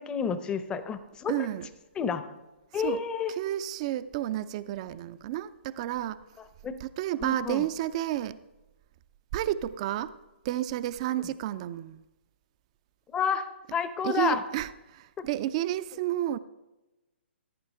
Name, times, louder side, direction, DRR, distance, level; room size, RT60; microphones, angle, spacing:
voice 1, 0.0-1.5 2.0-2.3 2.7-3.3 6.6-6.8 7.2-7.7 13.1-14.4 15.2-15.3, left 6 dB, 15° left, 0.7 m, -30 dB
voice 2, 1.3-1.7 2.8-3.0 3.4-6.2 6.8-8.4 9.3-10.2 10.4-12.0 14.0-16.4, right 13 dB, 35° right, 0.4 m, -31 dB
15.5 x 9.2 x 3.5 m
figure-of-eight pair, 125°, 6 cm